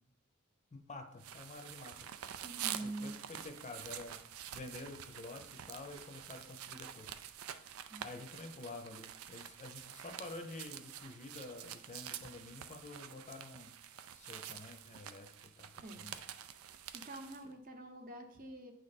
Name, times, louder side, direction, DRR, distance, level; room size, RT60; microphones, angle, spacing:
voice 1, 0.7-2.4 2.8-7.1 8.0-13.7 14.1-16.1, left 2 dB, 35° left, 6 dB, 0.6 m, -49 dB
sound 1, 1.2-17.4, right 10 dB, 85° right, 0.4 m, -47 dB
voice 2, 2.4-3.1 7.9-8.0 15.8-16.1 16.6-18.7, right 2 dB, 40° right, 5 dB, 0.8 m, -46 dB
9.1 x 3.3 x 4.1 m, 0.76 s
head